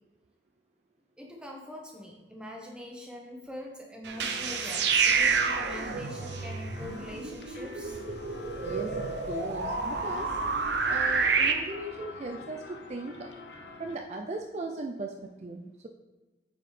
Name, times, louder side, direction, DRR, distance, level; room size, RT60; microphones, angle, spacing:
voice 1, 1.2-8.0, left 1 dB, 5° right, -1 dB, 1.0 m, -43 dB
sound 1, 4.0-11.5, right 5 dB, 75° right, 0.7 m, -29 dB
sound 2, 4.1-14.0, left 3 dB, 80° left, 0.7 m, -46 dB
voice 2, 8.6-10.4 10.9-13.3 13.8-15.9, right 2 dB, 40° right, 3 dB, 0.4 m, -38 dB
9.2 x 4.7 x 3.3 m, 1.2 s
head